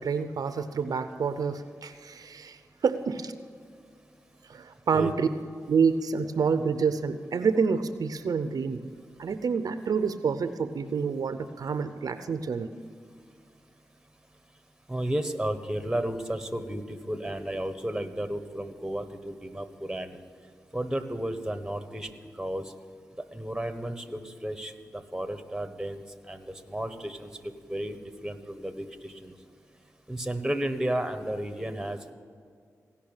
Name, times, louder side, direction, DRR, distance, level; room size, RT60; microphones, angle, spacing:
voice 1, 0.0-3.3 4.5-5.3 5.7-8.8 9.2-12.7, right 5 dB, 75° right, 11 dB, 0.6 m, -28 dB
voice 2, 14.9-20.2 20.7-22.1 22.4-22.7 23.3-29.3 30.1-32.0, right 1 dB, 10° right, 9 dB, 1.3 m, -33 dB
17.0 x 5.7 x 8.9 m, 2.2 s
cardioid pair, 45°, 6 cm